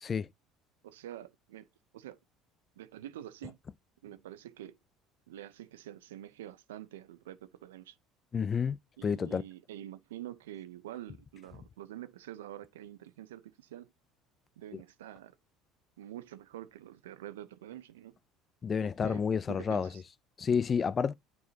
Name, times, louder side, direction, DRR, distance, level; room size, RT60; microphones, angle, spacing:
voice 1, 0.8-1.7 1.9-2.2 2.8-3.6 4.0-4.8 5.3-8.0 9.0-13.9 14.6-15.3 16.0-18.1 18.8-19.2 19.5-20.0, right 12 dB, 90° right, 0.6 m, -46 dB
voice 2, 8.3-8.8 9.0-9.4 18.6-19.9 20.4-21.1, left 6 dB, 35° left, 0.4 m, -29 dB
9.3 x 4.7 x 2.8 m
hypercardioid pair, 75°, 0 cm